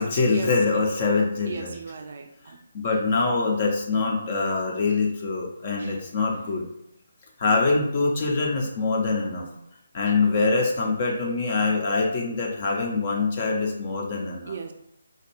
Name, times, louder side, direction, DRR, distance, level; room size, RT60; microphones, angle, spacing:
voice 1, 0.0-1.7 2.4-6.7 7.4-9.5 9.9-14.6, left 3 dB, 35° left, 0 dB, 0.6 m, -24 dB
voice 2, 1.4-2.6 5.8-6.1 9.4-9.6 10.1-10.2 14.5-14.7, right 6 dB, 50° right, 5 dB, 0.4 m, -37 dB
4.4 x 2.3 x 3.0 m, 0.77 s
figure-of-eight pair, 145°, 0 cm